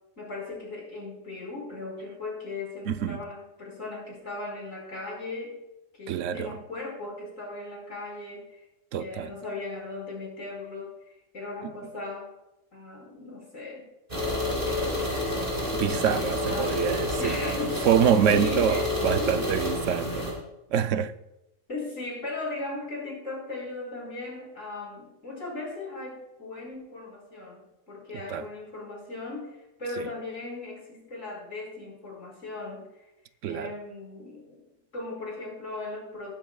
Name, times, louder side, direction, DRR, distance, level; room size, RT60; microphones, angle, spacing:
voice 1, 0.2-5.6 5.9-8.6 9.0-10.9 11.3-12.3 12.7-13.9 14.7-15.1 16.5-16.8 17.2-17.9 18.2-19.4 21.7-33.1 33.5-34.6 34.9-36.3, left 2 dB, 85° left, 5.1 m, -38 dB
voice 2, 2.9-3.2 6.1-6.6 8.9-9.3 15.7-17.4 17.9-20.3 20.7-21.1 28.3-28.4 30.0-30.1 33.4-33.7, right 8 dB, 75° right, 0.9 m, -25 dB
sound 1, 14.1-20.3, left 2 dB, 45° right, 4.6 m, -29 dB
19.5 x 10.5 x 2.3 m
omnidirectional pair, 1.3 m